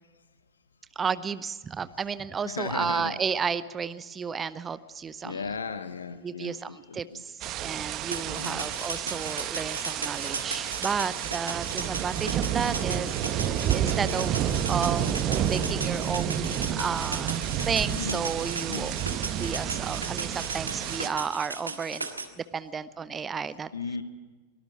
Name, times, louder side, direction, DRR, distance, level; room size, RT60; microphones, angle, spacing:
voice 1, 1.0-5.4 6.2-18.9 19.4-22.1 22.4-23.7, right 6 dB, 20° right, 16 dB, 0.6 m, -32 dB
voice 2, 2.4-3.2 5.2-7.2 8.3-8.7 12.0-14.0 14.5-14.9 18.0-18.3 18.7-18.9 23.7-24.0, left 5 dB, 75° left, 11 dB, 1.0 m, -38 dB
sound 1, 7.4-21.1, right 10 dB, 35° right, 1.3 m, -30 dB
sound 2, 8.1-22.3, right 3 dB, 80° right, 1.7 m, -36 dB
24.0 x 18.5 x 6.1 m, 1.3 s
figure-of-eight pair, 90°, 0 cm